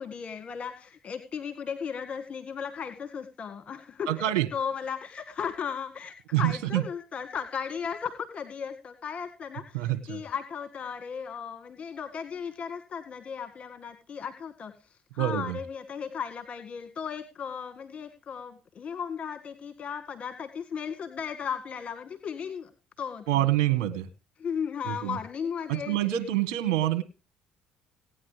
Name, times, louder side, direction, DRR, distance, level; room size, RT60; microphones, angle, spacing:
voice 1, 0.0-22.7 23.0-23.5 24.4-26.0, left 7 dB, 45° left, 7 dB, 1.8 m, -36 dB
voice 2, 4.1-4.5 6.3-6.8 9.7-10.2 15.2-15.6 23.3-24.1 24.8-25.2 25.7-27.0, right 13 dB, 80° right, 9 dB, 1.5 m, -26 dB
18.5 x 9.7 x 3.3 m, 0.32 s
hypercardioid pair, 60°, 3 cm